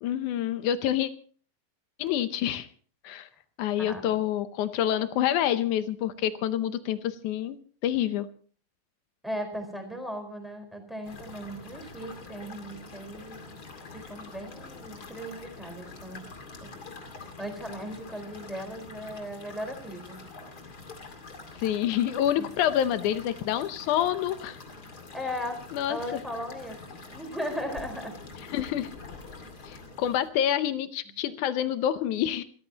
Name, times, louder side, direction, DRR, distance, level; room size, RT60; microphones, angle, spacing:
voice 1, 0.0-1.1 2.0-2.7 3.0-3.3 3.6-7.6 7.8-8.3 21.6-24.6 25.7-26.0 28.5-28.9 29.7-32.4, left 11 dB, 75° left, 12 dB, 2.0 m, -27 dB
voice 2, 3.8-4.2 9.2-13.4 13.9-16.2 16.6-16.7 17.4-20.2 22.4-22.5 25.1-25.6 25.9-26.8 27.1-28.2, equal, ahead, 4 dB, 3.9 m, -37 dB
sound 1, 11.0-30.3, left 3 dB, 30° left, 2.2 m, -45 dB
27.0 x 14.0 x 2.9 m, 0.42 s
omnidirectional pair, 4.2 m